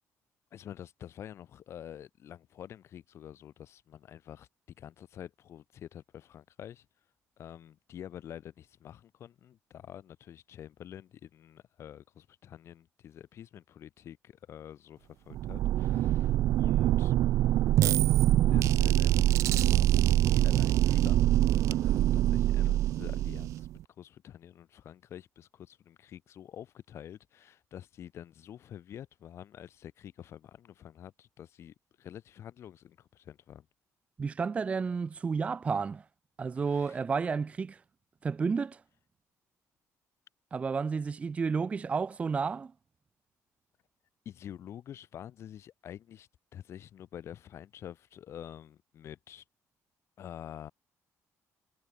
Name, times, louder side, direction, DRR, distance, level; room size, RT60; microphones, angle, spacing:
voice 1, 0.5-6.8 7.4-17.1 17.8-18.2 18.5-23.7 24.0-33.6 36.6-37.0 44.2-49.4 50.2-50.7, left 10 dB, 50° left, 3.5 m, -48 dB
sound 1, 15.3-23.8, right 14 dB, 60° right, 0.4 m, -25 dB
voice 2, 34.2-36.0 36.4-37.8 38.2-38.8 40.5-42.7, right 5 dB, 20° right, 0.7 m, -31 dB
cardioid pair, 170°, 6 cm